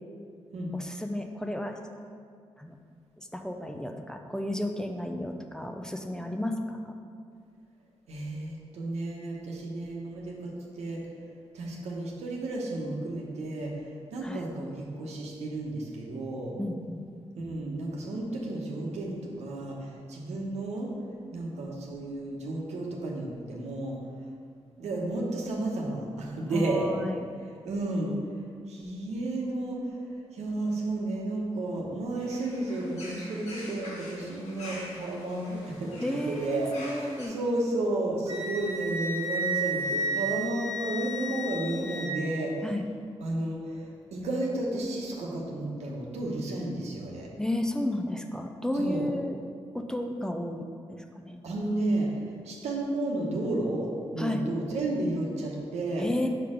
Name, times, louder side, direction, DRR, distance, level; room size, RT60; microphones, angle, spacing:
voice 1, 0.7-1.8 2.6-2.8 3.2-6.9 14.2-14.5 16.6-17.0 26.5-27.3 36.0-37.4 42.6-42.8 47.4-49.4 49.7-51.4 54.2-54.4 56.0-56.3, left 1 dB, 5° left, 4 dB, 0.5 m, -32 dB
voice 2, 8.1-11.0 11.5-16.5 17.4-20.9 21.3-24.0 24.8-26.9 27.4-28.1 28.7-30.0 30.3-42.5 43.2-47.3 48.7-49.1 51.4-56.0, right 2 dB, 85° right, -2 dB, 1.0 m, -32 dB
sound 1, 32.2-37.3, left 1 dB, 90° left, 1.3 m, -45 dB
Wind instrument woodwind instrument, 38.3-42.1, right 2 dB, 35° right, 1.1 m, -32 dB
5.1 x 4.4 x 5.0 m, 2.2 s
cardioid pair, 60°, 11 cm